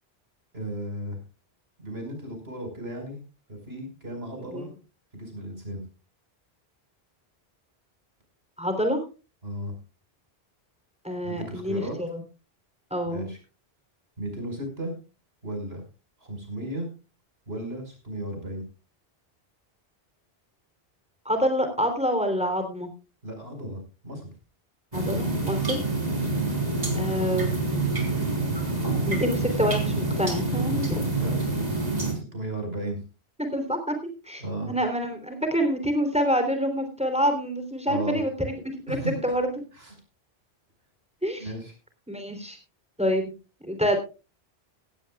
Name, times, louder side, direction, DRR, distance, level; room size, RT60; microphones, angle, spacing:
voice 1, 0.5-1.2 1.8-3.2 3.5-4.7 5.1-5.8 9.4-9.7 11.2-12.0 13.0-13.4 14.2-14.9 15.4-15.8 16.2-16.9 17.5-18.6 23.2-24.3 26.2-26.5 31.1-33.0 34.4-34.7 37.9-38.2 38.9-39.4 39.7-39.9 41.4-41.7, right 1 dB, 70° right, 4 dB, 5.5 m, -35 dB
voice 2, 8.6-9.0 11.0-12.2 12.9-13.3 21.2-22.9 24.9-25.8 26.9-27.7 29.1-31.0 33.4-33.9 34.2-39.5 41.2-41.5 42.1-42.6 43.0-43.3 43.6-44.0, equal, 5° right, 6 dB, 3.2 m, -27 dB
sound 1, 24.9-32.1, right 2 dB, 40° right, 3.9 m, -27 dB
16.0 x 16.0 x 2.3 m, 0.30 s
omnidirectional pair, 1.1 m